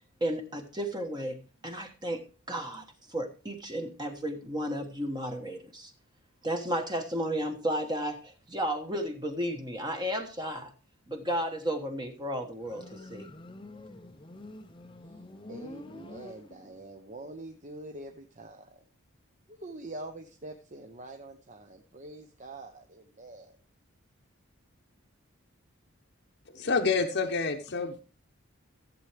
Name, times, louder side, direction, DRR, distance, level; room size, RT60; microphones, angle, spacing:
voice 1, 0.2-1.4 1.6-2.2 2.5-5.9 6.4-10.7 11.1-13.3, equal, 20° right, 4 dB, 1.2 m, -33 dB
Motorcycle, 12.6-16.9, left 2 dB, 25° left, 0.6 m, -47 dB
voice 2, 15.5-18.8 19.5-23.6, right 2 dB, 35° right, 5 dB, 0.8 m, -45 dB
voice 3, 26.5-28.0, left 4 dB, 50° left, 2 dB, 0.8 m, -28 dB
14.5 x 7.7 x 3.3 m, 0.34 s
head